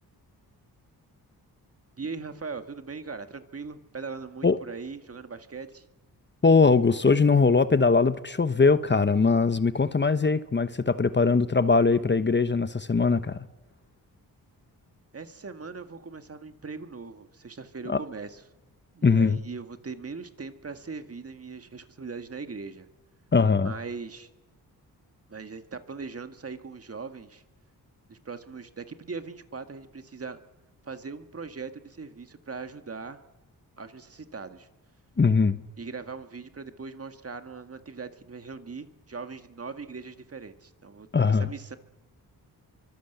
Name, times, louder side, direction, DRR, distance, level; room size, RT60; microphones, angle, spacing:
voice 1, 2.0-5.9 15.1-18.4 18.9-22.9 23.6-24.3 25.3-27.4 28.1-30.4 30.8-33.2 33.8-34.7 35.8-41.8, right 4 dB, 40° right, 1.8 m, -40 dB
voice 2, 6.4-13.4 17.9-18.0 19.0-19.4 23.3-23.7 35.2-35.6 41.1-41.5, left 4 dB, 30° left, 1.1 m, -21 dB
27.5 x 24.5 x 8.1 m
cardioid pair, 75°, 38 cm